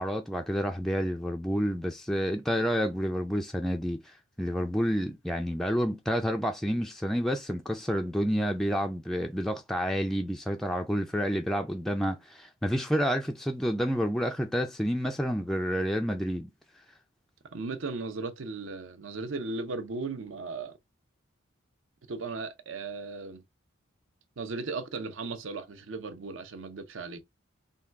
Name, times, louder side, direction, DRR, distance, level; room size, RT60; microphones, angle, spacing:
voice 1, 0.0-16.5, equal, ahead, 0.3 m, -29 dB
voice 2, 17.5-20.8 22.1-23.4 24.4-27.2, right 3 dB, 65° right, 0.6 m, -36 dB
3.6 x 2.3 x 4.4 m
head